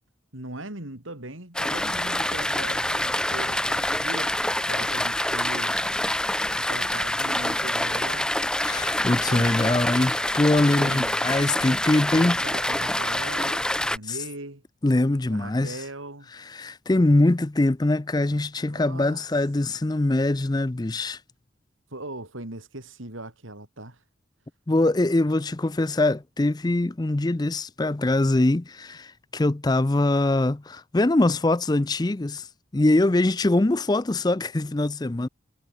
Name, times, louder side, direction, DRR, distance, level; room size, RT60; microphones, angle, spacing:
voice 1, 0.3-5.8 6.5-8.3 9.3-9.8 10.7-11.2 12.2-14.6 15.3-16.3 18.7-19.2 21.9-24.0, right 2 dB, 85° right, 4.7 m, -39 dB
sound 1, 1.5-14.0, left 1 dB, 5° left, 0.8 m, -26 dB
voice 2, 8.6-12.4 14.1-14.2 14.8-15.8 16.3-21.2 24.7-35.3, left 2 dB, 20° left, 0.5 m, -23 dB
head